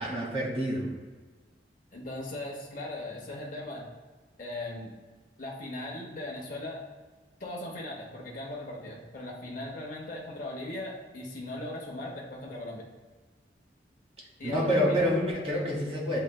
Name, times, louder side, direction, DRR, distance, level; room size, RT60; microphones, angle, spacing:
voice 1, 0.0-0.9 14.4-16.2, equal, 35° right, -3 dB, 1.2 m, -27 dB
voice 2, 1.9-3.9 4.4-4.9 5.4-6.8 7.4-12.8 14.4-15.2, left 1 dB, 50° left, -3 dB, 0.8 m, -38 dB
7.4 x 3.1 x 2.2 m, 1.3 s
head